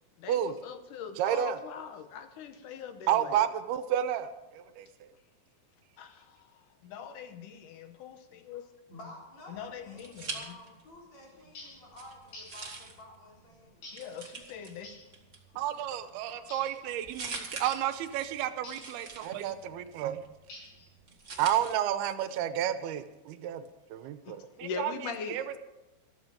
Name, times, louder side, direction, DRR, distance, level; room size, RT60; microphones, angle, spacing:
voice 1, 0.2-3.4 6.0-6.3 6.8-8.6 9.5-10.3 13.9-14.9 16.3-16.4 24.3-25.4, left 6 dB, 70° left, 8 dB, 2.2 m, -41 dB
voice 2, 1.2-1.6 3.1-4.9 15.6-20.2 21.4-23.7 23.9-25.6, right 11 dB, 85° right, 10 dB, 2.8 m, -31 dB
voice 3, 8.9-13.9, left 1 dB, 45° left, -3 dB, 5.5 m, -51 dB
sound 1, 9.5-11.0 11.3-21.7, right 4 dB, 55° right, 0.8 m, -46 dB
sound 2, 11.5-11.8 12.3-12.6 13.8-14.1 14.8-15.1 16.5-16.8 17.6-17.9 18.6-18.9 20.5-20.9, left 1 dB, 90° left, 7.0 m, -48 dB
13.5 x 13.5 x 5.2 m, 0.98 s
omnidirectional pair, 4.5 m